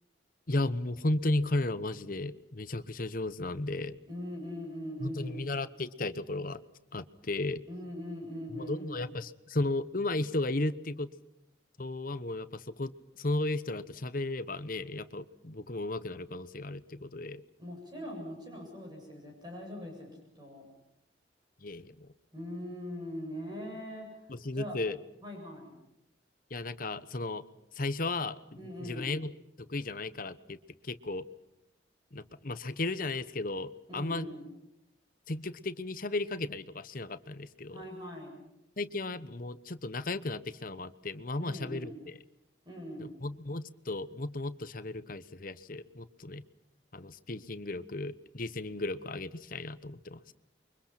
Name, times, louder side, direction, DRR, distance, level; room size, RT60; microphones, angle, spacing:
voice 1, 0.5-4.0 5.0-6.6 6.9-7.6 8.5-11.1 11.8-17.4 21.6-22.1 24.3-25.0 26.5-27.4 27.8-29.3 29.6-30.6 30.8-31.2 32.1-34.3 35.3-37.8 38.8-42.2 43.0-46.4 46.9-50.3, left 2 dB, 50° left, 13 dB, 1.1 m, -35 dB
voice 2, 4.1-5.5 7.7-9.1 17.6-20.1 20.4-20.6 22.3-24.2 24.5-24.8 25.2-25.8 28.6-29.2 33.9-34.5 37.7-38.4 41.4-42.0 42.6-43.1, equal, 25° right, 0 dB, 8.0 m, -41 dB
29.5 x 24.0 x 5.9 m, 0.86 s
head